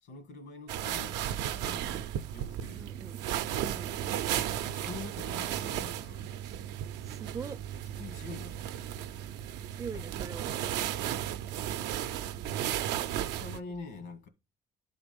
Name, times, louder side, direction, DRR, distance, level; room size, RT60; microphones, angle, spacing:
voice 1, 0.0-1.2 1.5-2.9 4.6-6.3 7.7-8.7 9.9-10.1 12.2-12.3 13.0-14.3, left 4 dB, 80° left, 1.7 m, -46 dB
sound 1, 0.7-13.6, right 11 dB, 90° right, 0.6 m, -34 dB
voice 2, 2.7-3.2 3.6-3.9 7.0-7.6 9.7-10.6, right 6 dB, 20° right, 0.4 m, -42 dB
11.0 x 3.9 x 5.2 m
cardioid pair, 110°, 17 cm